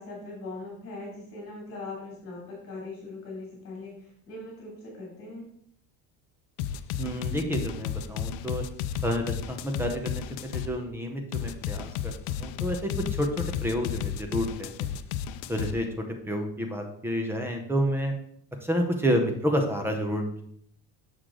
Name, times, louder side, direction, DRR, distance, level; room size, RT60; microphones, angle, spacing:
voice 1, 0.0-5.5, left 2 dB, 30° left, -3 dB, 2.5 m, -40 dB
sound 1, 6.6-10.7 11.3-15.7, left 9 dB, 80° left, 0.6 m, -33 dB
voice 2, 7.0-8.6 9.0-12.1 12.4-12.9 13.2-14.9 15.5-15.9 16.3-18.1 18.6-20.4, equal, 5° right, 3 dB, 0.7 m, -29 dB
6.6 x 6.4 x 3.7 m, 0.67 s
cardioid pair, 165°, 43 cm